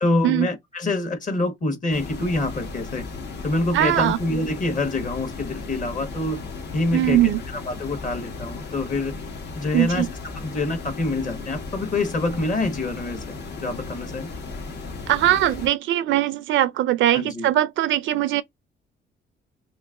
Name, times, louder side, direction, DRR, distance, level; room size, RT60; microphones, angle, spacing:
voice 1, 0.0-3.0 3.4-6.4 6.7-9.1 9.5-10.1 10.3-14.3 17.1-17.5, left 2 dB, 40° left, 1.3 m, -26 dB
sound 1, 1.9-15.7, left 3 dB, 60° left, 1.1 m, -35 dB
voice 2, 3.7-4.2 6.9-7.4 9.7-10.1 15.1-18.4, right 13 dB, 75° right, 0.4 m, -21 dB
3.0 x 2.6 x 3.6 m
cardioid pair, 90°, 20 cm